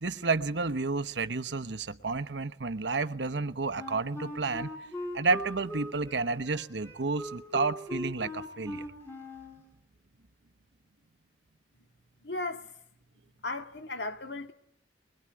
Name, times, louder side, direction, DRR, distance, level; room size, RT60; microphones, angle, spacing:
voice 1, 0.0-4.7 5.1-8.9, right 3 dB, 80° right, 1.1 m, -31 dB
Wind instrument woodwind instrument, 3.7-9.6, left 1 dB, 15° left, 5.5 m, -40 dB
voice 2, 12.2-12.7 13.4-14.5, left 2 dB, 75° left, 1.8 m, -36 dB
24.5 x 22.0 x 9.8 m
head